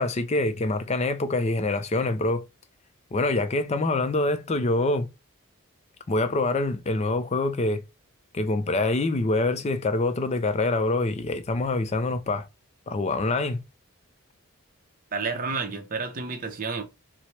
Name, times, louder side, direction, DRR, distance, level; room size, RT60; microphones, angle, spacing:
voice 1, 0.0-2.5 3.1-5.1 6.1-7.8 8.3-12.5 12.9-13.6, left 2 dB, 30° left, 0.4 m, -25 dB
voice 2, 15.1-16.8, right 4 dB, 40° right, 0.6 m, -30 dB
4.1 x 2.0 x 3.1 m
head